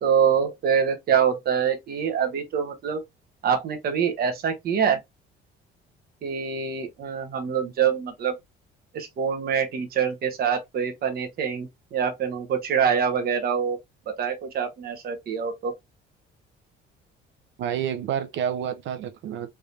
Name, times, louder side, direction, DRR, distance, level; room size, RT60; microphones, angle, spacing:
voice 1, 0.0-3.0 3.4-5.0 6.2-8.3 8.9-13.8 14.1-15.7, right 7 dB, 45° right, 1.1 m, -25 dB
voice 2, 17.6-19.5, right 9 dB, 65° right, 0.6 m, -29 dB
3.6 x 3.4 x 2.7 m
cardioid pair, 145°, 21 cm